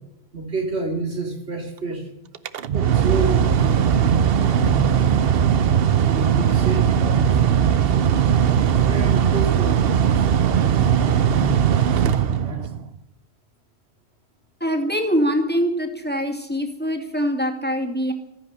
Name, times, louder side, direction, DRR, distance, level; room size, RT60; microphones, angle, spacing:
voice 1, 0.3-2.1 2.7-5.1 6.0-7.9 8.7-11.7 12.0-12.6, right 2 dB, 80° right, 2 dB, 3.1 m, -30 dB
Mechanical fan, 2.3-12.9, right 8 dB, 65° right, 0.9 m, -19 dB
voice 2, 14.6-18.1, equal, 10° left, 3 dB, 2.2 m, -23 dB
14.0 x 10.5 x 9.5 m, 0.91 s
omnidirectional pair, 1.1 m